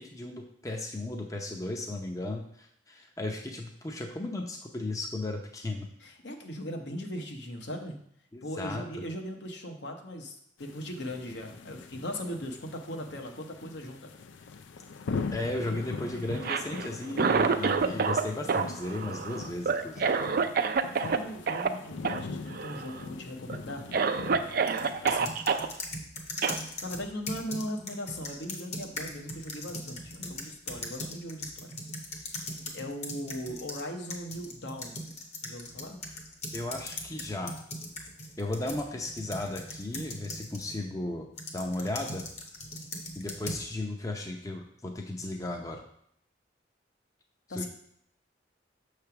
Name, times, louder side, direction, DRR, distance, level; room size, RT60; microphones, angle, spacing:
voice 1, 0.0-5.9 8.3-8.8 15.3-20.1 36.5-37.6 38.4-41.3 41.5-42.2 43.1-45.8 47.5-47.7, left 2 dB, 20° left, 2 dB, 0.6 m, -35 dB
voice 2, 6.0-8.0 8.4-14.1 20.9-23.8 25.0-25.4 26.8-31.7 32.3-32.4 32.7-34.9 35.4-36.0 47.5-47.7, equal, 70° left, 3 dB, 0.9 m, -39 dB
sound 1, 10.6-25.2, left 4 dB, 85° left, 0.4 m, -41 dB
Cough, 16.3-18.2 18.5-21.2 21.5-21.7 22.0-22.2 22.5-23.0 23.5-23.6 23.9-25.7 26.4-26.6, right 5 dB, 50° right, 0.4 m, -27 dB
sound 2, 24.7-33.8 34.1-40.8 41.4-43.7, left 2 dB, 35° left, 0.9 m, -40 dB
6.9 x 3.3 x 5.8 m, 0.70 s
head